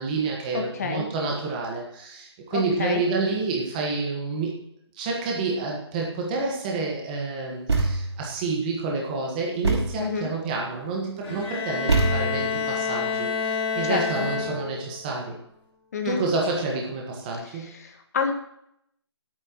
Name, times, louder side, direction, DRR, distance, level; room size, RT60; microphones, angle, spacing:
voice 1, 0.0-4.6 4.9-15.4 16.0-17.8, right 3 dB, 20° right, -1 dB, 1.5 m, -29 dB
voice 2, 0.5-1.1 2.5-3.0 10.0-10.3 13.8-14.3 15.9-16.2 17.5-18.3, left 5 dB, 35° left, 5 dB, 1.7 m, -29 dB
Thump thud, 7.7-8.2 9.6-10.1 11.9-12.6, right 3 dB, 75° right, 5.1 m, -24 dB
Bowed string instrument, 11.2-14.9, left 5 dB, 15° left, 3.1 m, -28 dB
20.5 x 9.1 x 3.1 m, 0.74 s
hypercardioid pair, 165°, 15 cm